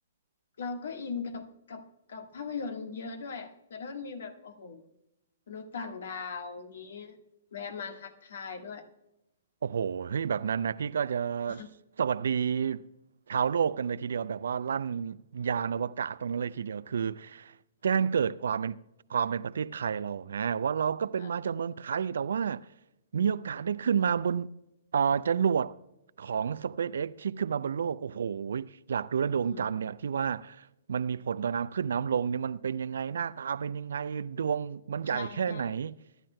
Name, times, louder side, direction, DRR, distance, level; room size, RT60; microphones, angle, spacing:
voice 1, 0.6-4.8 5.5-7.2 7.5-8.8 11.5-11.7 21.2-21.3 29.4-29.7 35.0-35.7, left 5 dB, 65° left, 1.5 m, -39 dB
voice 2, 9.6-11.6 12.0-12.8 13.3-17.5 17.8-18.8 19.1-22.7 23.1-24.5 24.9-25.8 26.2-36.0, right 7 dB, 70° right, 0.4 m, -30 dB
23.5 x 11.5 x 2.2 m
figure-of-eight pair, 120°, 0 cm